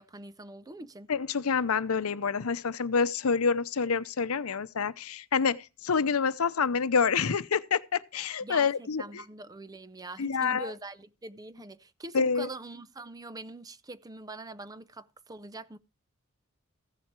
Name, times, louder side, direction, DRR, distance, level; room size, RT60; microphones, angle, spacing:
voice 1, 0.0-1.1 8.4-15.8, right 2 dB, 20° right, 0.5 m, -43 dB
voice 2, 1.1-9.2 10.2-10.7 12.1-12.5, left 5 dB, 85° left, 0.7 m, -27 dB
15.0 x 7.4 x 4.6 m
head